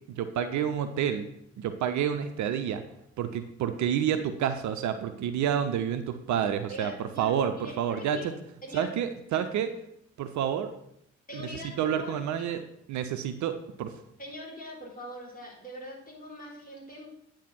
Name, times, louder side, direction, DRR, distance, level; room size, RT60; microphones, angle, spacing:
voice 1, 0.1-1.3 1.6-2.8 3.2-8.3 8.7-9.7 10.2-10.7 11.3-11.4 11.8-12.6 12.9-13.9, right 9 dB, 55° right, 9 dB, 0.7 m, -29 dB
voice 2, 6.7-8.3 8.6-8.9 9.3-9.4 11.3-12.2 12.5-12.6 14.2-17.1, equal, 25° left, -3 dB, 4.1 m, -42 dB
9.2 x 4.5 x 6.2 m, 0.76 s
figure-of-eight pair, 40°, 34 cm